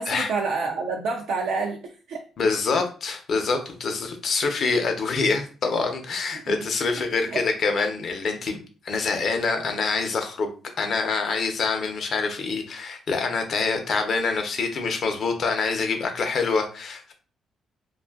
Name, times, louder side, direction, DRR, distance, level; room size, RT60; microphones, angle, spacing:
voice 1, 0.0-2.2 2.7-2.8 6.5-6.6 7.3-7.4, right 4 dB, 80° right, 1 dB, 0.4 m, -28 dB
voice 2, 2.4-10.5 10.8-17.1, left 4 dB, 60° left, 5 dB, 0.6 m, -25 dB
2.5 x 2.3 x 2.3 m, 0.36 s
cardioid pair, 90°, 0 cm